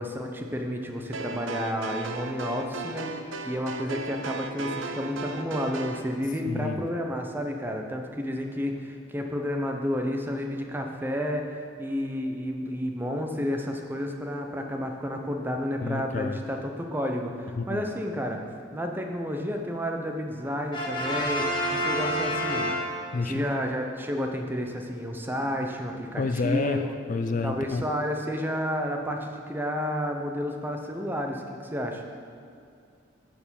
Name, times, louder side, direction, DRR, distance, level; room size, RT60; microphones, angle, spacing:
voice 1, 0.0-11.4 11.8-18.4 18.7-22.7 23.2-26.8 27.4-32.0, equal, 10° right, 3 dB, 0.7 m, -31 dB
sound 1, 1.1-6.1, right 3 dB, 85° right, 0.6 m, -36 dB
voice 2, 6.5-6.8 15.8-16.4 17.6-17.8 23.1-23.4 26.2-27.8, left 3 dB, 45° left, 8 dB, 0.4 m, -29 dB
Brass instrument, 20.7-23.4, equal, 25° left, 1.3 m, -28 dB
10.5 x 4.6 x 7.0 m, 2.4 s
head